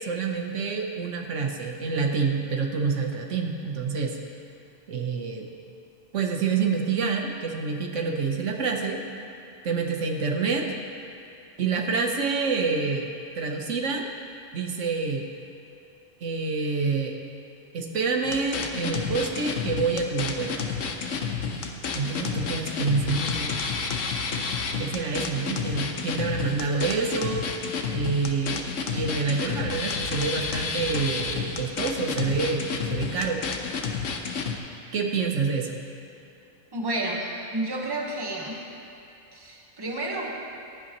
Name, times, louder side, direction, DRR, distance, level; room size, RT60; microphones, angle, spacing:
voice 1, 0.0-4.2 4.9-5.5 6.1-9.0 9.6-10.8 11.6-14.1 14.5-15.3 16.2-17.2 17.7-20.7 21.9-23.6 24.4-24.5 24.8-27.6 27.9-28.6 28.9-33.4 34.9-35.8, right 4 dB, 80° right, 2 dB, 1.3 m, -27 dB
sound 1, 18.2-34.6, left 5 dB, 90° left, 1.2 m, -30 dB
voice 2, 36.7-38.7 39.3-40.3, right 1 dB, 20° right, -1 dB, 1.2 m, -31 dB
16.0 x 11.5 x 3.0 m, 2.9 s
omnidirectional pair, 1.3 m